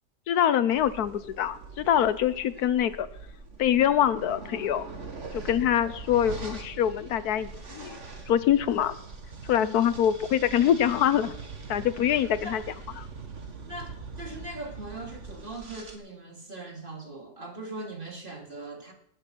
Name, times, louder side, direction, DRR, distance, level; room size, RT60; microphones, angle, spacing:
voice 1, 0.3-3.1 3.6-4.8 5.3-8.0 8.3-8.9 9.5-11.3 11.7-12.6 13.0-13.1, left 10 dB, 75° left, 14 dB, 1.2 m, -24 dB
sound 1, 0.7-16.0, right 4 dB, 50° right, 2.1 m, -42 dB
voice 2, 12.1-12.6 13.6-18.9, right 2 dB, 35° right, 1 dB, 2.6 m, -41 dB
20.0 x 8.0 x 6.0 m, 0.74 s
omnidirectional pair, 1.7 m